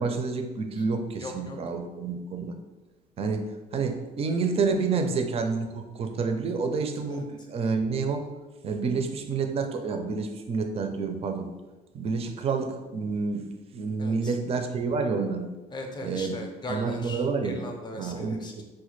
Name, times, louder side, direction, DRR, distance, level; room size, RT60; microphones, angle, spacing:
voice 1, 0.0-2.5 3.2-3.5 3.7-8.2 8.6-11.5 11.9-15.5 16.0-16.4 16.7-17.6 18.0-18.6, right 4 dB, 35° right, 6 dB, 0.4 m, -29 dB
voice 2, 1.2-1.6 7.1-7.2 14.0-14.4 15.7-18.6, left 2 dB, 25° left, 3 dB, 0.6 m, -38 dB
4.1 x 2.1 x 3.1 m, 1.1 s
cardioid pair, 110°, 17 cm